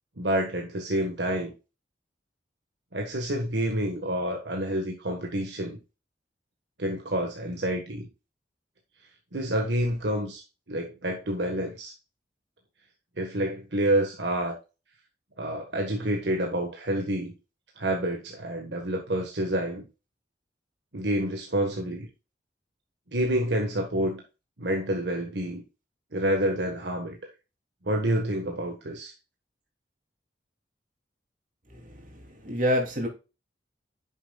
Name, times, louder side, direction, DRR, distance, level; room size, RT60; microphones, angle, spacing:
voice 1, 0.2-1.5 2.9-5.8 6.8-8.1 9.3-10.4 10.7-11.9 13.2-14.6 15.4-17.3 17.8-19.8 20.9-22.1 23.1-24.2 24.6-25.6 26.1-27.2 27.8-29.1, right 1 dB, 75° right, 1 dB, 1.5 m, -28 dB
voice 2, 31.7-33.1, equal, 45° right, 1 dB, 3.0 m, -28 dB
9.5 x 7.2 x 2.4 m, 0.29 s
head